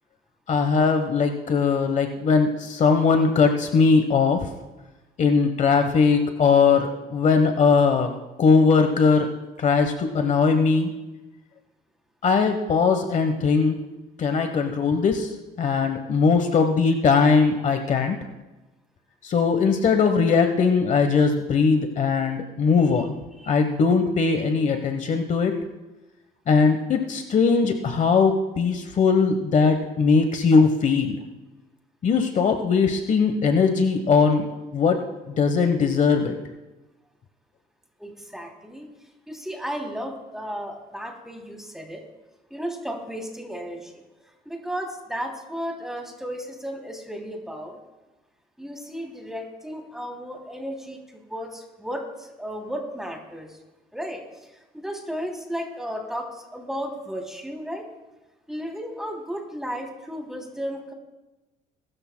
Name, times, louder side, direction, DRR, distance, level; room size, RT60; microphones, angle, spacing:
voice 1, 0.5-4.5 5.2-8.1 8.4-9.3 9.6-10.9 12.2-13.8 14.2-15.3 15.6-18.2 19.2-23.1 23.5-25.5 26.5-31.2 32.0-34.5 34.7-35.0 35.3-36.3, left 5 dB, 45° left, 6 dB, 1.1 m, -20 dB
voice 2, 38.0-38.9 39.3-42.0 42.5-44.0 44.4-47.8 48.6-53.6 53.9-57.8 58.5-60.9, equal, 5° right, 0 dB, 2.9 m, -34 dB
22.0 x 13.5 x 2.2 m, 1.1 s
cardioid pair, 110°, 17 cm